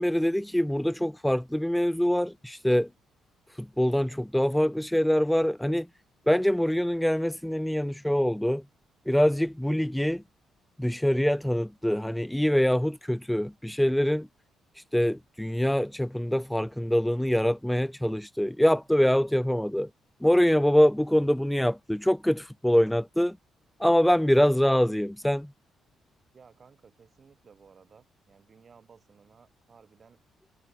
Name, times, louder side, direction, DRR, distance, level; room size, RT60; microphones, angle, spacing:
voice 1, 0.0-2.9 3.6-5.9 6.3-8.6 9.1-10.2 10.8-14.3 14.9-19.9 20.2-23.4 23.8-25.5, equal, 5° left, 0.4 m, -24 dB
voice 2, 26.3-30.2, right 6 dB, 45° right, 6.9 m, -57 dB
cardioid pair, 90°, 0 cm